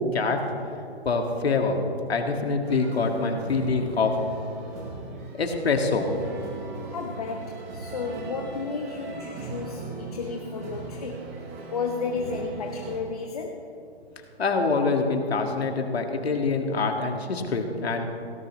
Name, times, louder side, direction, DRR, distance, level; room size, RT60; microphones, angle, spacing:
voice 1, 1.0-1.8 2.1-4.2 5.4-6.1 14.4-18.0, left 4 dB, 70° left, 3 dB, 2.1 m, -25 dB
sound 1, 2.6-13.0, right 3 dB, 15° right, 1.0 m, -39 dB
voice 2, 6.9-11.2 11.7-13.6, left 5 dB, 35° left, 3 dB, 0.9 m, -33 dB
17.5 x 16.5 x 3.2 m, 2.8 s
hypercardioid pair, 170°, 32 cm